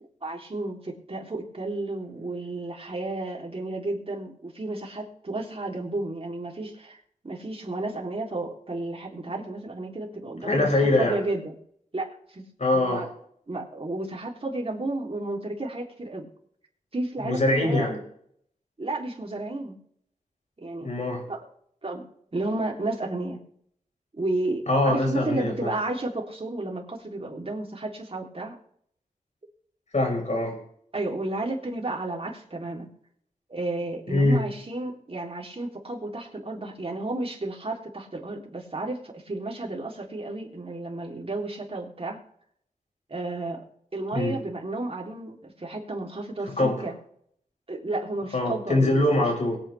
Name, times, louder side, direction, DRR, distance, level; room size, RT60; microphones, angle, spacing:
voice 1, 0.2-10.7 11.0-11.5 11.9-12.4 12.7-13.1 13.5-16.3 16.9-18.0 18.8-19.8 20.6-20.9 21.3-21.5 21.8-22.0 22.3-23.4 24.1-28.6 30.9-32.9 33.5-42.2 43.1-43.6 43.9-46.9 47.7-49.2, right 2 dB, 40° right, 0 dB, 3.6 m, -32 dB
voice 2, 10.4-11.2 12.6-13.0 17.2-17.9 20.8-21.2 24.7-25.7 29.9-30.6 34.1-34.4 44.1-44.4 46.6-46.8 48.3-49.6, left 2 dB, 55° left, 0 dB, 5.4 m, -23 dB
22.5 x 8.8 x 3.6 m, 0.65 s
wide cardioid pair, 65°, 14 cm